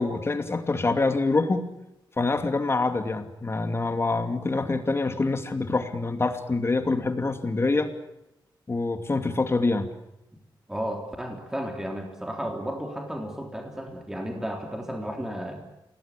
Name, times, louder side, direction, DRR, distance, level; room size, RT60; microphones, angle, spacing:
voice 1, 0.0-1.7 2.2-7.9 8.7-9.9, left 3 dB, 30° left, 7 dB, 2.6 m, -25 dB
voice 2, 10.7-15.6, equal, 5° right, 2 dB, 3.5 m, -33 dB
27.5 x 19.0 x 8.6 m, 0.87 s
wide cardioid pair, 110°, 8 cm